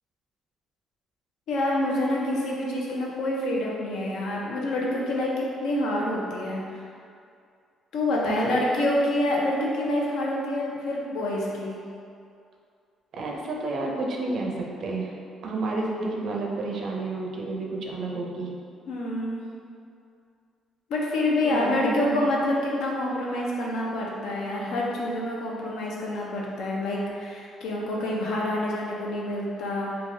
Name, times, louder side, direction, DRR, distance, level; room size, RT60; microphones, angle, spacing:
voice 1, 1.5-6.6 7.9-11.8 18.9-19.4 20.9-29.9, left 1 dB, 85° left, -3 dB, 0.5 m, -27 dB
voice 2, 8.1-8.6 13.1-15.2 15.4-18.6 21.5-22.2, right 2 dB, 60° right, -1 dB, 0.4 m, -30 dB
3.2 x 2.3 x 2.6 m, 2.3 s
cardioid pair, 105°, 0 cm